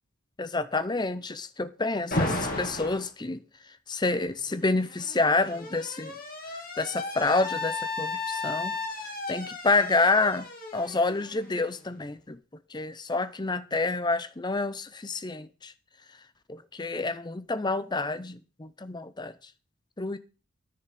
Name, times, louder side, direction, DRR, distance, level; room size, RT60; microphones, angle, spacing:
voice 1, 0.4-3.4 3.9-6.1 6.8-8.8 9.3-12.4 12.7-15.7 16.5-19.3 20.0-20.2, left 3 dB, 20° left, 0.6 m, -28 dB
Alarm, 2.1-3.1 4.3-12.0, left 2 dB, 45° left, 2.8 m, -34 dB
10.0 x 5.7 x 7.7 m
head